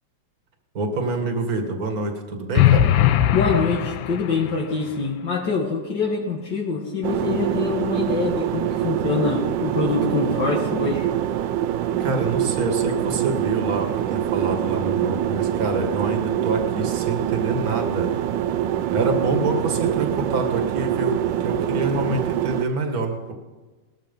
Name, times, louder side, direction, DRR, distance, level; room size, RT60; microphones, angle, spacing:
voice 1, 0.7-2.9 12.0-18.1 18.9-23.3, right 3 dB, 50° right, 4 dB, 2.3 m, -26 dB
sound 1, 2.6-4.6, left 12 dB, 90° left, 1.5 m, -19 dB
voice 2, 3.3-11.1, left 4 dB, 65° left, -1 dB, 2.3 m, -24 dB
sound 2, 7.0-22.6, right 11 dB, 75° right, 1.4 m, -24 dB
19.5 x 13.5 x 5.3 m, 1.3 s
omnidirectional pair, 2.1 m